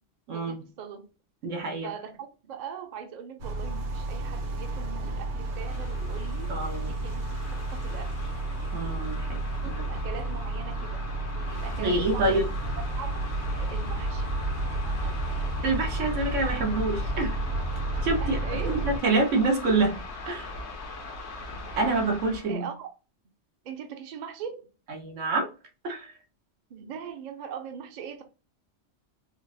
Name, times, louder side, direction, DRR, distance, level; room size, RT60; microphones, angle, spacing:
voice 1, 0.3-1.0 1.8-8.3 9.6-12.4 13.0-14.3 14.8-15.3 18.2-18.8 22.4-22.9 23.6-24.7 26.7-28.2, right 7 dB, 50° right, 0.5 m, -41 dB
voice 2, 1.4-1.9 6.5-6.9 8.7-9.4 9.7-9.9 11.8-12.5 15.6-17.4 18.0-18.4 18.7-20.5 21.8-22.6 24.9-25.5 25.8-26.1, right 2 dB, 90° right, 1.2 m, -27 dB
sound 1, 3.4-19.0, right 2 dB, 70° right, 1.0 m, -31 dB
sound 2, 5.5-22.5, left 2 dB, 70° left, 0.9 m, -41 dB
3.7 x 2.0 x 2.5 m
omnidirectional pair, 1.2 m